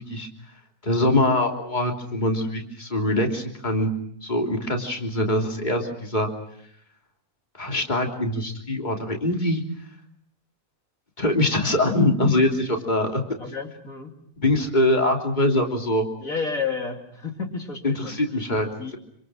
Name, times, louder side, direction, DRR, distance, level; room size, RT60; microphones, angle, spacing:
voice 1, 0.8-3.9 4.2-6.3 7.6-9.6 11.2-13.2 14.4-16.0 17.8-18.7, left 1 dB, 30° left, 1 dB, 3.4 m, -23 dB
voice 2, 13.4-14.1 16.2-18.2 18.8-19.0, left 5 dB, 60° left, 2 dB, 3.2 m, -31 dB
27.5 x 26.5 x 6.3 m, 0.71 s
omnidirectional pair, 1.6 m